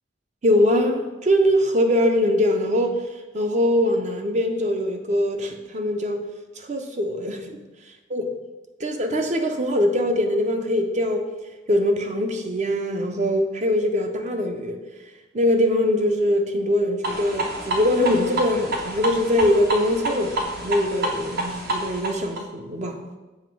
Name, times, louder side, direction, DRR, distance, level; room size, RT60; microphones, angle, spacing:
voice 1, 0.4-3.0 3.3-6.2 6.6-7.6 8.1-8.2 8.8-11.3 11.7-14.8 15.3-23.0, left 1 dB, 40° right, 0.7 m, -22 dB
sound 1, 17.0-22.4, right 2 dB, 55° right, 1.0 m, -28 dB
7.3 x 3.0 x 6.0 m
head